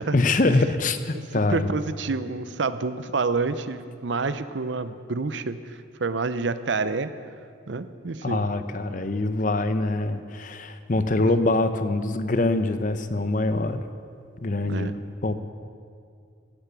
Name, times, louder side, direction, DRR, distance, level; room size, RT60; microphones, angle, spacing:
voice 1, 0.1-1.7 8.2-13.8 14.4-15.3, left 2 dB, 40° left, 11 dB, 0.7 m, -24 dB
voice 2, 1.5-7.1 7.7-8.5 8.9-9.1 14.7-14.9, right 4 dB, 70° right, 13 dB, 0.7 m, -28 dB
16.5 x 11.0 x 6.9 m, 2.3 s
head